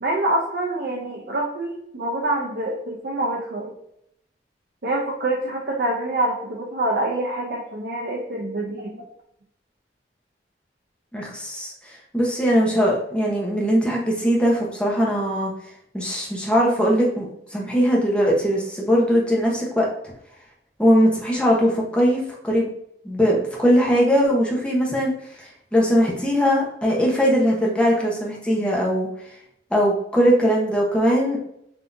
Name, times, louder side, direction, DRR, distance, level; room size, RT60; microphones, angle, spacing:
voice 1, 0.0-3.7 4.8-9.0, right 1 dB, 60° right, -2 dB, 0.7 m, -26 dB
voice 2, 11.1-15.5 15.9-19.9 20.8-22.7 23.0-25.1 25.4-29.1 29.7-31.4, equal, 5° left, -3 dB, 0.9 m, -20 dB
6.0 x 2.8 x 2.6 m, 0.74 s
head